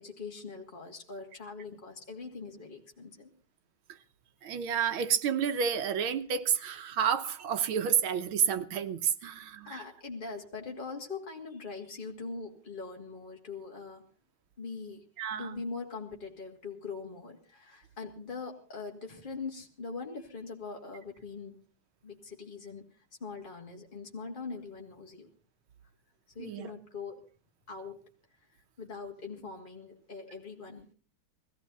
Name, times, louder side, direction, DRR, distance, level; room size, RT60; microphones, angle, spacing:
voice 1, 0.0-3.3 9.6-14.0 14.6-15.0 15.4-21.6 22.0-22.8 23.2-25.3 26.3-27.3 27.7-28.0 28.8-30.9, left 4 dB, 25° left, 2.6 m, -42 dB
voice 2, 4.4-9.8 15.2-15.6 26.4-26.7, right 8 dB, 85° right, 1.9 m, -30 dB
20.5 x 15.0 x 4.1 m
omnidirectional pair, 2.2 m